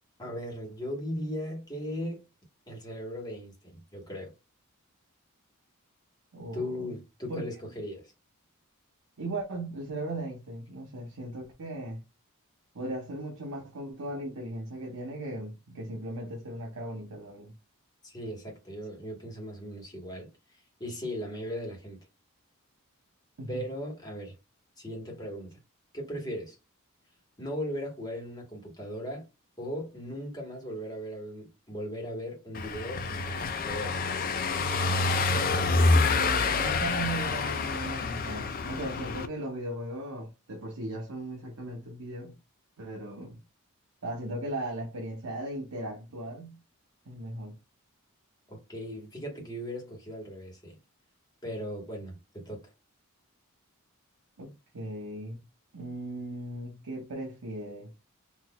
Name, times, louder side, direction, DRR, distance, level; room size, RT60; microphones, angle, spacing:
voice 1, 0.2-2.2 2.7-4.3 6.5-8.1 18.0-22.0 23.5-24.3 24.8-25.6 25.9-26.6 27.4-29.3 29.6-34.0 48.5-50.8 51.4-52.7, equal, 20° left, 1.3 m, -38 dB
voice 2, 6.3-6.9 7.3-7.4 9.2-12.0 12.7-17.6 23.4-23.6 35.9-42.4 42.8-43.4 44.0-46.6 47.1-47.6 54.4-55.4 55.7-57.9, right 1 dB, 80° right, 0.8 m, -37 dB
Car passing by / Engine, 32.5-39.3, left 3 dB, 40° left, 0.4 m, -27 dB
3.9 x 2.6 x 2.2 m
head